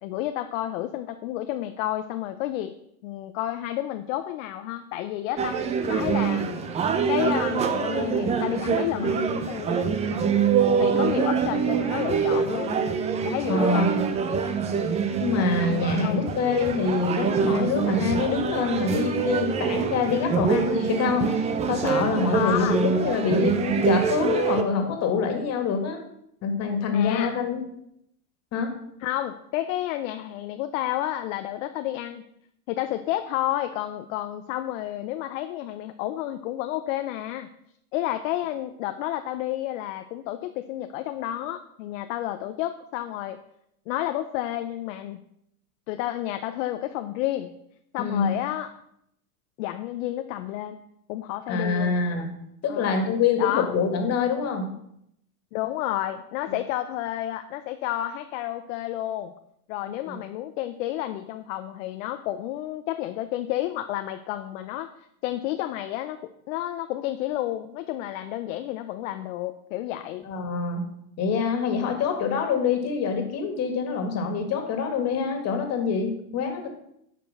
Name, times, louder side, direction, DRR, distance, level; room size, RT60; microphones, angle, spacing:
voice 1, 0.0-2.7 3.0-5.6 5.9-6.7 7.1-9.8 10.3-10.5 10.8-12.8 13.2-13.9 16.0-16.4 22.3-22.8 26.9-27.4 29.0-32.2 32.7-37.5 37.9-43.4 43.9-45.2 45.9-47.5 47.9-48.7 49.6-50.8 51.1-52.0 52.7-53.1 53.4-53.7 55.5-59.3 59.7-64.9 65.2-70.2, left 13 dB, 55° left, 8 dB, 0.7 m, -30 dB
sound 1, 5.4-24.6, right 6 dB, 15° right, 0.5 m, -25 dB
voice 2, 13.5-14.0 15.2-26.0 26.4-27.6 28.5-28.7 48.0-48.4 51.5-52.3 52.6-54.7 56.5-56.6 60.0-60.2 70.2-70.8 71.2-76.7, left 5 dB, 35° left, 4 dB, 2.1 m, -25 dB
9.9 x 5.2 x 6.4 m, 0.75 s
supercardioid pair, 130°, 46 cm